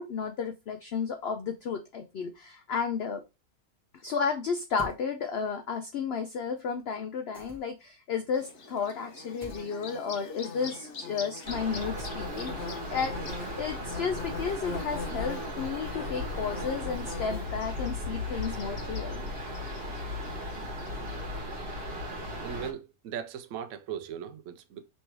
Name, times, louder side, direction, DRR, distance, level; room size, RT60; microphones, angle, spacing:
voice 1, 0.0-3.2 4.0-13.1 13.6-19.2, left 6 dB, 75° left, 0.5 m, -33 dB
sound 1, 4.8-5.0 7.3-7.9 9.4-9.7 12.0-12.5, left 1 dB, ahead, 0.8 m, -45 dB
Bird / Buzz, 8.3-21.3, left 3 dB, 55° left, 1.0 m, -42 dB
sound 2, 11.4-22.7, left 1 dB, 45° right, 1.3 m, -36 dB
voice 2, 22.4-24.8, right 8 dB, 70° right, 0.8 m, -38 dB
3.3 x 3.1 x 4.4 m
omnidirectional pair, 1.6 m